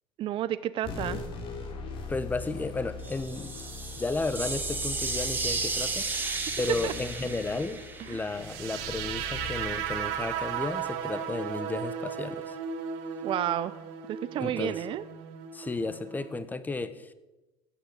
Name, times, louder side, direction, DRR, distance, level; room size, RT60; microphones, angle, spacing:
voice 1, 0.2-1.2 6.2-6.5 6.8-6.9 8.0-8.3 13.2-13.8 14.1-15.0, right 12 dB, 45° right, 13 dB, 0.6 m, -31 dB
sound 1, 0.8-11.7, left 4 dB, 45° left, 3.8 m, -41 dB
voice 2, 2.1-3.5 4.0-6.1 6.6-12.5 14.4-14.8 15.5-17.1, left 3 dB, 15° left, 13 dB, 1.2 m, -33 dB
sound 2, 3.0-8.9, right 3 dB, 15° right, 2.4 m, -34 dB
sound 3, 8.3-16.4, right 8 dB, 80° right, 2.1 m, -36 dB
15.5 x 9.2 x 8.2 m, 1.1 s
supercardioid pair, 120°, 12 cm